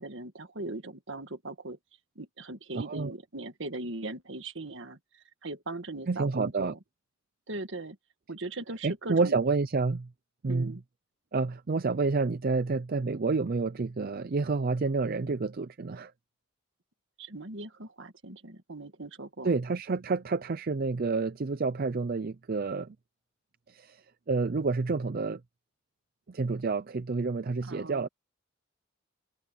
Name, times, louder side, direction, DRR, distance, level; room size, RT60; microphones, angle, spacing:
voice 1, 0.0-1.8 2.2-6.8 7.5-8.0 8.3-9.4 10.5-10.8 17.2-19.6 27.6-28.1, right 2 dB, 65° right, 1.8 m, -39 dB
voice 2, 2.7-3.1 6.1-6.7 8.8-10.1 10.4-10.7 11.3-16.1 19.4-23.0 23.7-25.4 26.3-28.1, right 4 dB, 45° right, 0.5 m, -29 dB
head